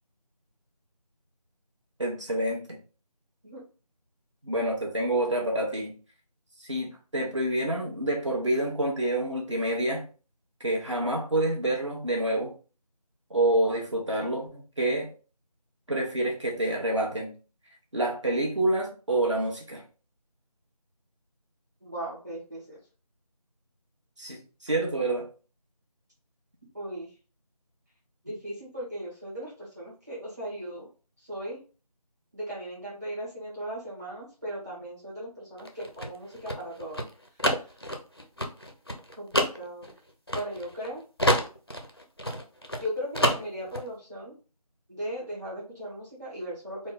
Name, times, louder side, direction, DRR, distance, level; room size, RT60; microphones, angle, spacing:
voice 1, 2.0-2.8 4.4-6.0 6.6-10.1 10.6-12.5 13.3-15.1 15.9-17.3 17.9-19.8 24.2-25.3, right 1 dB, 50° right, -1 dB, 1.2 m, -27 dB
voice 2, 21.8-22.8 26.7-27.1 28.2-30.9 31.2-31.6 32.3-37.0 37.4-37.7 39.1-39.9 40.3-41.0 42.7-44.3 44.9-46.9, equal, 25° right, -7 dB, 1.6 m, -37 dB
sound 1, 35.6-40.9 41.2-42.9 43.1-43.8, equal, 40° left, 0.5 m, -28 dB
3.8 x 2.2 x 3.7 m, 0.36 s
figure-of-eight pair, 175°, 20 cm